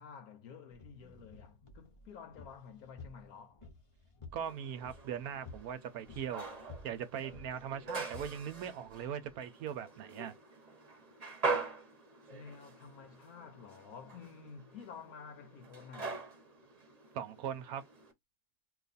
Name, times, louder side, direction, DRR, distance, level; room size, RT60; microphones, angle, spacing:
voice 1, 0.0-3.6 12.3-16.2, left 6 dB, 70° left, 1.1 m, -51 dB
sound 1, 0.7-9.4, left 3 dB, 40° left, 0.4 m, -54 dB
voice 2, 4.3-6.5 6.8-10.3 17.1-17.8, right 8 dB, 70° right, 1.0 m, -40 dB
sound 2, 4.4-18.1, right 4 dB, 30° right, 0.8 m, -43 dB
2.8 x 2.4 x 4.0 m
omnidirectional pair, 1.7 m